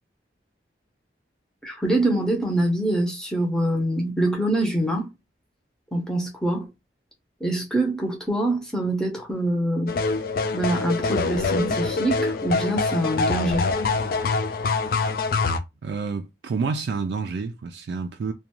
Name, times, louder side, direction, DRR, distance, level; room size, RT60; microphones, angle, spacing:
voice 1, 1.6-5.1 5.9-6.7 7.4-9.9 10.5-13.7, right 1 dB, 5° left, 0.6 m, -24 dB
sound 1, 9.9-15.6, left 3 dB, 55° left, 0.3 m, -24 dB
voice 2, 15.8-18.3, right 4 dB, 70° right, 0.3 m, -29 dB
2.4 x 2.2 x 2.9 m
head